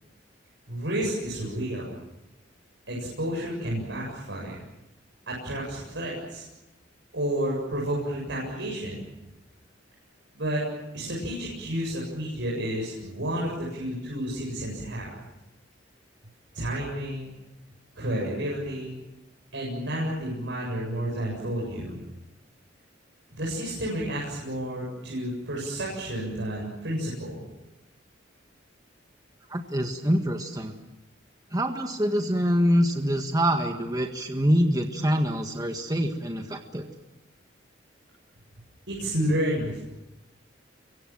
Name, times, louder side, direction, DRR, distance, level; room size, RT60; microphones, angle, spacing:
voice 1, 0.7-1.9 2.9-4.6 5.3-6.4 7.1-9.0 10.3-10.6 10.9-15.1 16.5-17.3 17.9-18.9 19.5-22.0 23.3-27.5 38.9-39.8, right 1 dB, 70° right, -4 dB, 7.9 m, -31 dB
voice 2, 29.5-30.8 31.5-36.9, equal, 20° right, 4 dB, 1.7 m, -25 dB
28.0 x 24.5 x 7.6 m, 0.98 s
head